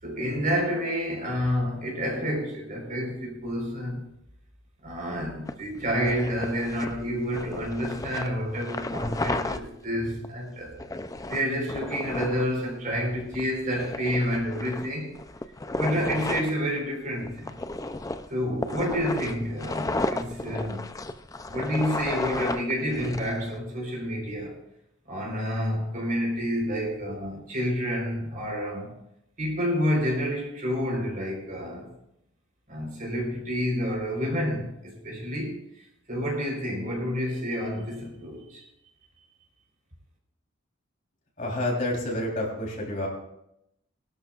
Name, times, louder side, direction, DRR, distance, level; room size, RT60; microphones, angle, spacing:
voice 1, 0.0-4.0 4.8-10.8 11.3-15.2 15.8-17.6 18.3-20.9 21.5-24.6 25.1-28.9 29.4-31.9 32.7-35.6 36.1-38.6, equal, 40° right, 4.3 m, -29 dB
sound 1, 5.5-9.6 10.2-10.3 10.8-12.5 13.0-13.1 13.3-13.4 13.7-16.5 17.3-23.6, left 2 dB, 15° left, 0.4 m, -33 dB
voice 2, 41.4-43.1, left 1 dB, 40° left, 3.6 m, -29 dB
23.0 x 12.0 x 2.5 m
head